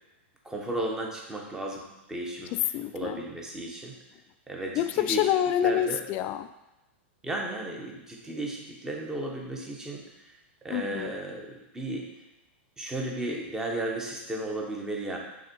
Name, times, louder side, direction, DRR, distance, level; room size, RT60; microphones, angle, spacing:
voice 1, 0.4-2.6 2.9-4.0 4.5-5.3 5.6-6.0 7.2-10.1 10.6-12.1 12.8-15.2, right 1 dB, 10° right, 0 dB, 0.9 m, -34 dB
voice 2, 2.5-3.2 4.8-6.5 10.7-11.1, left 11 dB, 30° left, 11 dB, 0.3 m, -27 dB
6.3 x 3.5 x 4.5 m, 0.98 s
supercardioid pair, 150°, 6 cm